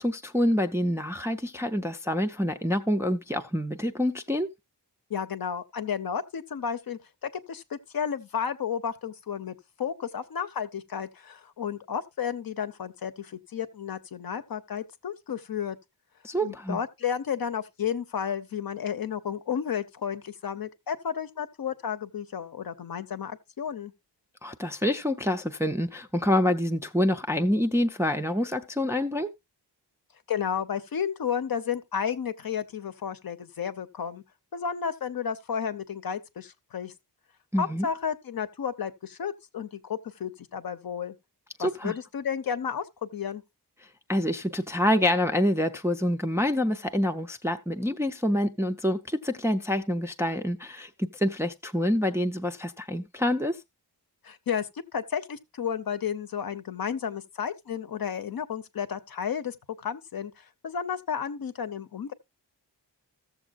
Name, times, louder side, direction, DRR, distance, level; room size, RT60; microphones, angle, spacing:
voice 1, 0.0-4.5 16.2-16.8 24.4-29.3 37.5-37.9 41.6-41.9 44.1-53.6, left 1 dB, 5° right, 0.4 m, -27 dB
voice 2, 5.1-15.8 16.4-23.9 30.3-34.2 34.5-36.9 37.6-41.2 41.6-43.4 54.2-62.1, left 7 dB, 55° left, 0.8 m, -32 dB
15.0 x 7.1 x 2.4 m
wide cardioid pair, 150°, 42 cm